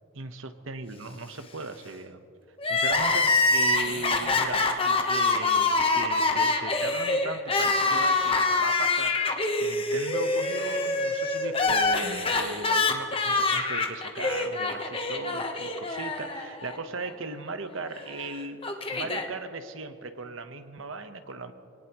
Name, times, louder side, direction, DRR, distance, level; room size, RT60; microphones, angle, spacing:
voice 1, 0.2-2.2 2.6-9.2 9.6-18.6 18.9-21.5, right 3 dB, 75° right, 8 dB, 1.0 m, -37 dB
Crying sobbing, 2.6-16.8 17.0-17.1 18.1-19.3, left 3 dB, 25° left, 1.0 m, -25 dB
24.5 x 18.5 x 3.1 m, 2.6 s
head